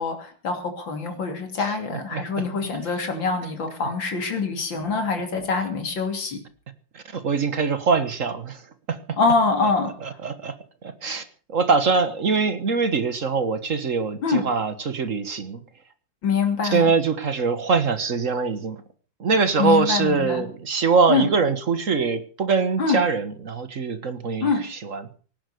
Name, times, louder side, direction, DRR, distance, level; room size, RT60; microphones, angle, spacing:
voice 1, 0.0-6.4 9.2-9.9 14.2-14.4 16.2-16.9 19.6-20.4 21.1-21.3 22.8-23.0 24.4-24.6, left 4 dB, 80° left, 5 dB, 3.7 m, -24 dB
voice 2, 1.6-2.7 6.9-8.6 8.9-9.2 10.0-10.5 10.8-15.6 16.7-18.8 19.2-25.2, right 4 dB, 45° right, 12 dB, 1.7 m, -23 dB
18.0 x 10.5 x 6.8 m, 0.41 s
omnidirectional pair, 2.0 m